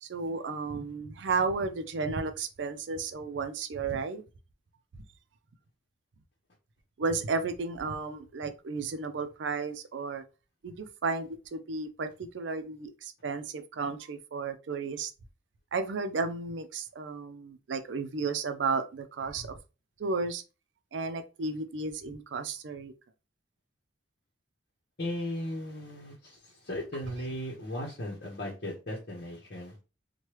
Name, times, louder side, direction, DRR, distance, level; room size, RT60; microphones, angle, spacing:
voice 1, 0.0-4.2 7.0-10.2 10.6-15.1 15.7-19.6 20.0-20.4 20.9-22.9, right 4 dB, 75° right, 0.4 m, -33 dB
voice 2, 25.0-29.8, left 1 dB, 55° left, 0.8 m, -37 dB
3.1 x 2.2 x 3.0 m
head